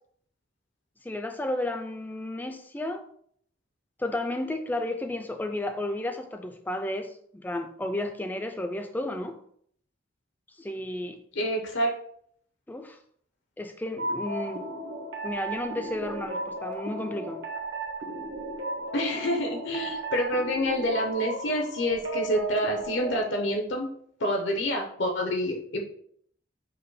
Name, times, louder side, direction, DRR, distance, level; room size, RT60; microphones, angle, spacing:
voice 1, 1.0-3.0 4.0-9.4 10.6-11.2 12.7-13.0 13.6-14.7 15.2-17.4, left 1 dB, 10° left, 0.3 m, -32 dB
voice 2, 11.4-11.9 18.9-23.9 24.2-25.8, equal, 80° left, 0.7 m, -27 dB
sound 1, 14.0-23.2, right 2 dB, 75° right, 1.0 m, -35 dB
4.8 x 2.2 x 4.6 m
head